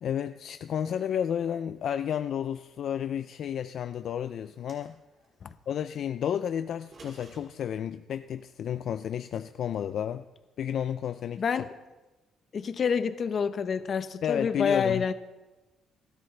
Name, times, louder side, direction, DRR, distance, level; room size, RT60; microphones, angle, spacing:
voice 1, 0.0-4.9 5.7-10.2 10.6-11.4 14.2-15.1, left 9 dB, 55° left, 0.4 m, -31 dB
sound 1, 4.4-5.3 6.7-7.4, right 3 dB, 40° right, 5.4 m, -52 dB
voice 2, 11.4-11.7 12.5-15.1, left 6 dB, 40° left, 0.8 m, -28 dB
30.0 x 12.0 x 3.3 m
cardioid pair, 155°, 0 cm